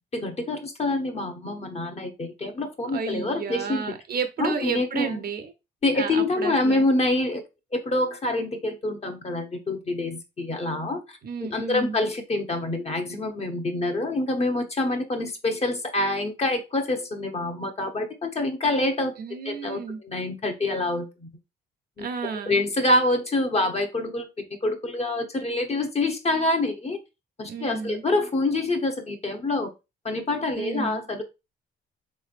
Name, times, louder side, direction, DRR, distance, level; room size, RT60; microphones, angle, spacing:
voice 1, 0.1-3.8 4.4-5.2 5.8-7.4 7.7-11.2 11.5-19.1 19.4-21.3 22.0-22.1 22.5-24.3 24.6-27.0 27.4-29.7 30.0-31.2, left 2 dB, 30° left, 0.8 m, -26 dB
voice 2, 2.9-5.5 5.9-6.9 11.2-12.0 19.2-20.0 22.0-22.6 27.5-28.0 30.5-31.1, right 6 dB, 50° right, 0.6 m, -32 dB
3.6 x 3.1 x 2.4 m
cardioid pair, 90°, 20 cm